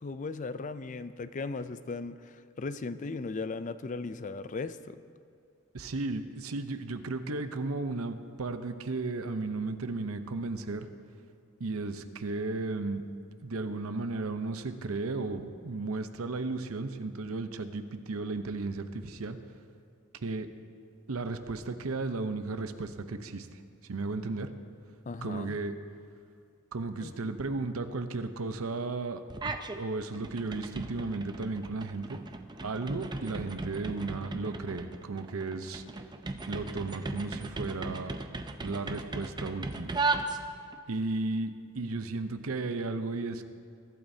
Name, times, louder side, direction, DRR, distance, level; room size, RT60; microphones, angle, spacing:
voice 1, 0.0-5.0 25.1-25.6 27.0-27.1, left 3 dB, 35° left, 13 dB, 0.4 m, -37 dB
voice 2, 5.7-10.9 11.6-13.0 13.4-19.4 20.2-20.5 21.1-23.6 23.9-24.5 25.2-25.8 26.7-29.2 29.7-32.2 32.6-35.8 36.5-38.2 38.6-40.0 40.9-43.4, right 3 dB, 85° right, 9 dB, 0.8 m, -34 dB
sound 1, 29.3-29.8 30.1-40.8, right 3 dB, 20° right, 0.5 m, -37 dB
22.0 x 12.0 x 2.8 m, 2.3 s
head